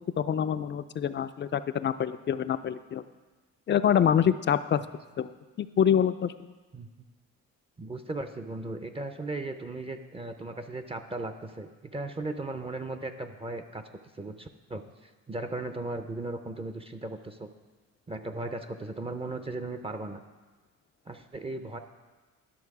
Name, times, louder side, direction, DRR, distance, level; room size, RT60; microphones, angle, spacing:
voice 1, 0.2-3.0 3.7-4.8 5.2-5.3 5.6-6.3, left 8 dB, 40° left, 12 dB, 0.4 m, -25 dB
voice 2, 7.8-13.8 14.1-17.5 18.1-20.2 21.1-21.8, right 2 dB, 20° right, 8 dB, 0.5 m, -37 dB
11.0 x 6.3 x 4.8 m, 1.3 s
cardioid pair, 90°, 30 cm